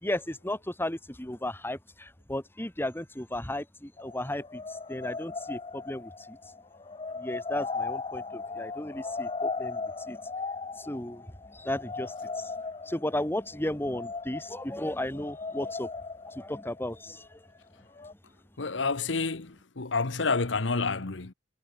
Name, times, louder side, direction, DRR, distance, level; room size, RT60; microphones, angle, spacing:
voice 1, 0.0-6.4 7.2-10.2 10.8-12.5 12.9-15.9 16.3-17.4, left 1 dB, 10° left, 1.9 m, -35 dB
sound 1, 4.0-17.6 18.0-18.1, left 4 dB, 30° left, 0.7 m, -37 dB
voice 2, 18.6-21.3, left 4 dB, 85° left, 1.2 m, -29 dB
head